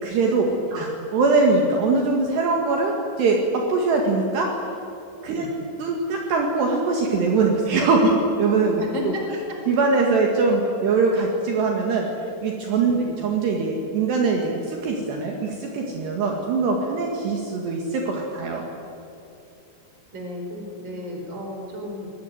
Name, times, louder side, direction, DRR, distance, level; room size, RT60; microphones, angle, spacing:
voice 1, 0.0-4.6 5.2-5.5 5.8-8.8 9.7-12.1 12.4-18.6, right 3 dB, 65° right, 1 dB, 3.8 m, -22 dB
voice 2, 8.7-9.6 12.9-13.2 20.1-22.1, equal, 25° right, 2 dB, 4.8 m, -34 dB
25.0 x 20.0 x 9.4 m, 2.7 s
omnidirectional pair, 5.6 m